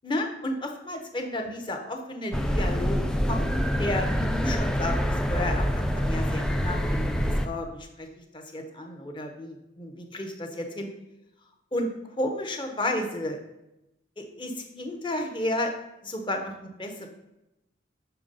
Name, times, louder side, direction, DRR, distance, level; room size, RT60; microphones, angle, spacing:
voice 1, 0.0-3.0 3.3-3.5 3.8-8.1 8.3-10.9 11.7-11.9 12.2-13.4 14.2-15.7 16.0-17.1, left 1 dB, 25° left, 4 dB, 0.8 m, -32 dB
sound 1, 2.3-7.5, equal, 5° left, 0.3 m, -26 dB
6.9 x 3.3 x 5.3 m, 0.91 s
head